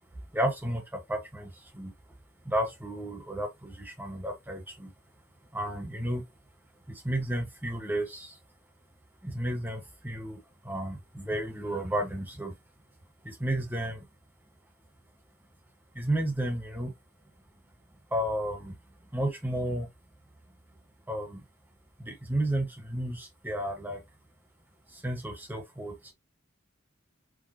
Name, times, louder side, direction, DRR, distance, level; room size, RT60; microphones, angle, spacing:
voice 1, 0.3-1.9 2.4-4.9 5.5-6.2 6.9-8.3 9.2-10.4 10.6-12.5 13.2-14.0 15.9-16.9 18.1-18.7 19.1-19.9 21.1-21.4 22.0-24.0 25.0-25.9, right 1 dB, 10° right, 1.4 m, -32 dB
4.9 x 3.2 x 2.9 m
head